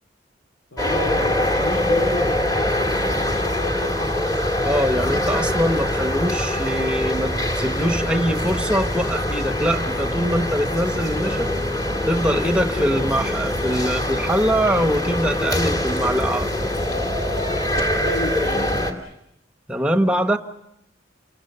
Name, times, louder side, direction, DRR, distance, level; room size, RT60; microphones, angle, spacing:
voice 1, 0.7-4.3 18.0-19.2, left 1 dB, 90° left, 5 dB, 3.1 m, -32 dB
sound 1, 0.8-18.9, left 1 dB, 20° left, 2.5 m, -23 dB
voice 2, 4.6-11.5 12.1-16.7 19.7-20.4, equal, 5° right, 7 dB, 1.3 m, -23 dB
sound 2, 7.8-17.8, right 1 dB, 45° left, 2.6 m, -39 dB
29.0 x 22.5 x 6.9 m, 0.81 s
head